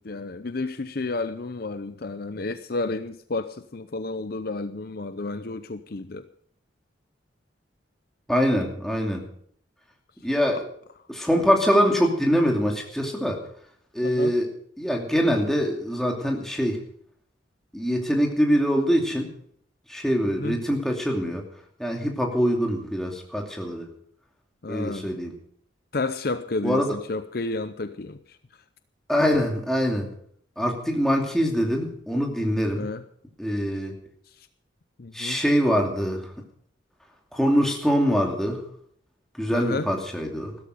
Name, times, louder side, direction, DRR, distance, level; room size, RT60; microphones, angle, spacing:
voice 1, 0.0-6.3 10.5-10.6 14.0-14.3 20.2-20.6 24.6-25.1 25.9-28.4 32.7-33.0 35.0-35.4 39.5-39.9, left 3 dB, 50° left, 0.6 m, -31 dB
voice 2, 8.3-9.3 10.2-10.6 11.1-13.4 13.9-14.5 14.8-16.8 17.7-19.3 19.9-21.4 21.8-23.9 24.7-25.3 26.6-26.9 29.1-30.1 30.6-32.9 33.4-34.0 35.1-36.3 37.3-38.6 39.4-40.6, equal, ahead, 2.6 m, -24 dB
15.5 x 13.5 x 5.1 m
head